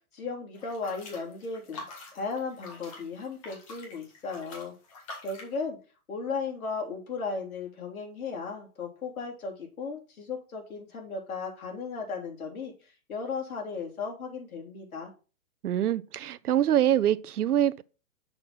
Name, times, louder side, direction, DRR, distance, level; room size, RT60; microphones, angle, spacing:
voice 1, 0.1-1.8 2.1-4.7 5.2-5.8 6.1-15.1, left 4 dB, 70° left, 3.5 m, -36 dB
sound 1, 0.5-5.6, left 2 dB, 20° left, 1.6 m, -46 dB
voice 2, 15.6-17.8, right 11 dB, 90° right, 0.7 m, -24 dB
6.5 x 6.1 x 4.0 m
hypercardioid pair, 170°, 44 cm